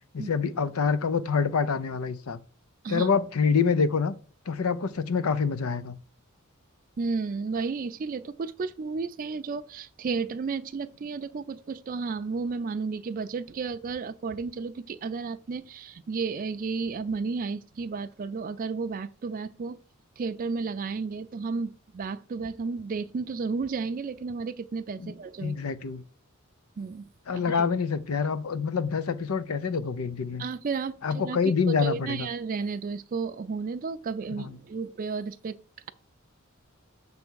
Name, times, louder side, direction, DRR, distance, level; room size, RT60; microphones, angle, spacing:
voice 1, 0.1-2.4 2.9-4.1 4.5-6.0 25.0-25.1 25.4-26.0 27.3-30.4 31.0-32.3 34.3-34.6, left 5 dB, 90° left, 0.6 m, -26 dB
voice 2, 7.0-19.8 20.2-25.6 26.8-27.7 30.4-31.4 31.7-35.5, right 4 dB, 40° right, 0.4 m, -33 dB
6.9 x 3.5 x 6.2 m
head